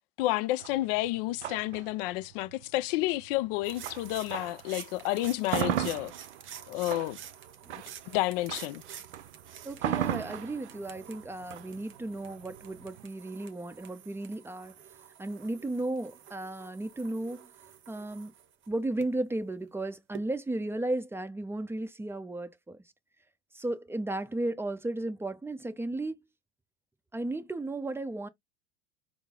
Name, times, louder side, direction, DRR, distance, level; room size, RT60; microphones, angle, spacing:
voice 1, 0.2-6.1 6.7-7.2 8.1-8.8, left 17 dB, 60° left, 0.4 m, -30 dB
sound 1, 0.6-4.7 5.1-13.1, right 11 dB, 85° right, 0.6 m, -36 dB
sound 2, 3.6-19.1 20.1-20.3, right 9 dB, 35° right, 0.9 m, -49 dB
voice 2, 9.6-14.8 15.2-17.5 17.9-18.3 18.7-22.8 23.5-26.2 27.1-28.3, right 2 dB, 5° right, 0.6 m, -34 dB
4.5 x 2.0 x 3.6 m
hypercardioid pair, 85°, 33 cm